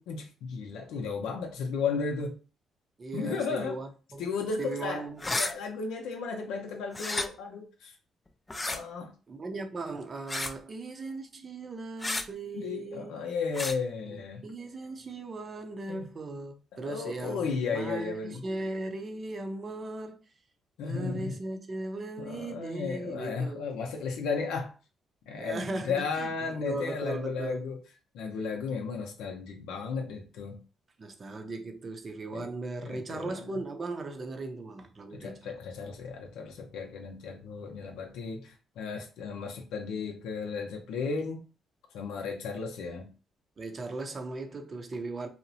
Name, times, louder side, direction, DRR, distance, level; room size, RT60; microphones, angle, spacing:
voice 1, 0.1-2.4 3.1-3.8 4.2-5.1 5.4-7.9 8.6-9.1 12.5-14.4 15.9-16.1 16.7-18.4 20.8-21.4 22.2-24.7 25.3-27.8 28.1-30.6 32.3-32.5 32.8-33.6 35.1-41.4 41.9-43.1, left 5 dB, 90° left, 0.5 m, -34 dB
voice 2, 3.0-4.3 4.6-5.3 9.3-13.1 14.0-20.2 20.8-23.7 25.4-26.3 26.6-27.7 31.0-35.6 43.6-45.3, right 2 dB, 40° right, 0.5 m, -38 dB
sound 1, 5.2-5.5 6.9-7.3 8.5-8.8 10.3-10.6 12.0-12.3 13.5-13.8, left 2 dB, 20° left, 0.3 m, -31 dB
2.8 x 2.0 x 2.7 m
cardioid pair, 90°, 0 cm